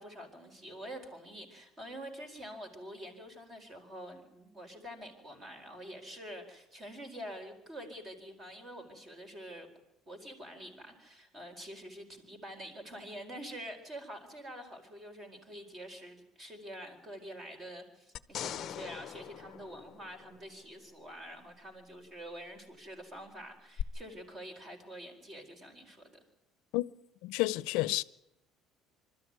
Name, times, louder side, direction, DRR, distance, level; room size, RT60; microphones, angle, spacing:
voice 1, 0.0-9.7 10.1-26.1, equal, 25° right, 4.5 m, -46 dB
sound 1, 18.2-20.7 23.8-23.9, left 10 dB, 40° left, 0.8 m, -41 dB
voice 2, 27.2-28.0, left 19 dB, 85° left, 0.7 m, -30 dB
25.5 x 13.5 x 9.5 m
cardioid pair, 170°, 0 cm